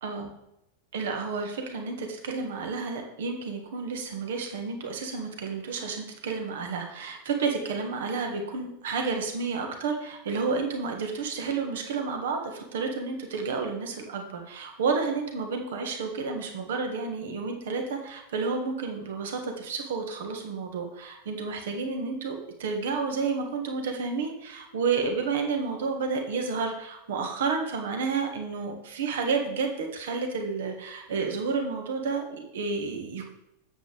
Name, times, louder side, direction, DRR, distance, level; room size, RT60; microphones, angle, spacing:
voice 1, 0.9-33.3, right 4 dB, 60° right, 4 dB, 1.6 m, -31 dB
9.0 x 7.9 x 3.5 m, 0.83 s
figure-of-eight pair, 90°, 0 cm